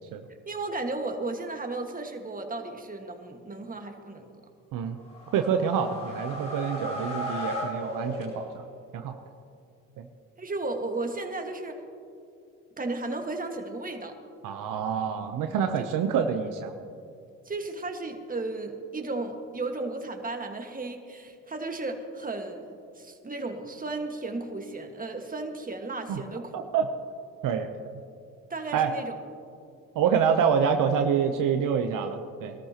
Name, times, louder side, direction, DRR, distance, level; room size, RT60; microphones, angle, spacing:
voice 1, 0.5-4.3 10.4-11.8 12.8-14.2 15.8-15.9 17.4-26.7 28.5-29.1, right 2 dB, 25° right, 4 dB, 1.7 m, -34 dB
sound 1, 5.0-8.8, left 1 dB, 90° left, 2.9 m, -35 dB
voice 2, 5.3-8.7 8.9-9.2 10.0-10.1 14.4-16.7 26.1-26.2 26.5-26.9 27.4-28.0 28.7-28.9 29.9-32.5, right 7 dB, 70° right, 6 dB, 0.8 m, -27 dB
20.5 x 13.0 x 2.9 m, 2.4 s
supercardioid pair, 60°, 33 cm